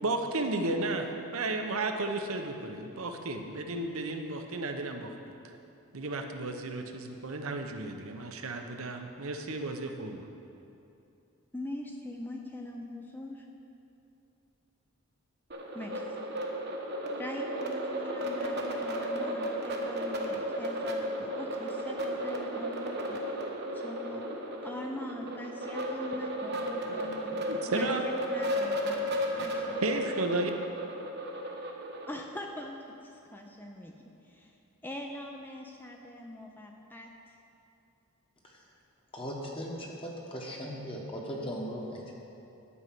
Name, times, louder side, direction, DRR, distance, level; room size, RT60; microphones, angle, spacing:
voice 1, 0.0-5.1 5.9-10.3 26.9-27.0 27.3-28.0 29.8-30.5, right 2 dB, 70° right, 5 dB, 0.9 m, -33 dB
voice 2, 11.5-13.5 15.7-16.0 17.1-23.5 23.7-24.3 24.6-27.4 27.7-30.0 32.1-33.9 34.2-34.6 34.8-37.4, left 1 dB, 10° left, 1 dB, 0.5 m, -42 dB
sound 1, 15.5-32.2, equal, 50° right, 1.1 m, -34 dB
voice 3, 39.1-42.1, equal, 25° left, -2 dB, 1.2 m, -38 dB
11.0 x 5.5 x 7.6 m, 2.7 s
head